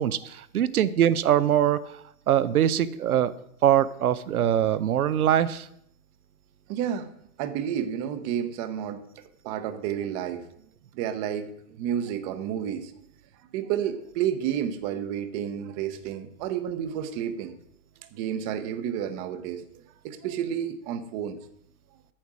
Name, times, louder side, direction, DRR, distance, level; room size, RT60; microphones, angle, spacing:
voice 1, 0.0-1.9 2.3-3.3 3.6-5.7, right 10 dB, 85° right, 16 dB, 0.7 m, -22 dB
voice 2, 6.7-7.1 7.4-9.1 9.4-10.5 10.9-12.9 13.5-17.5 18.1-19.6 20.0-21.4, right 9 dB, 30° right, 11 dB, 0.8 m, -30 dB
8.8 x 7.0 x 6.1 m, 0.74 s
hypercardioid pair, 140°, 43 cm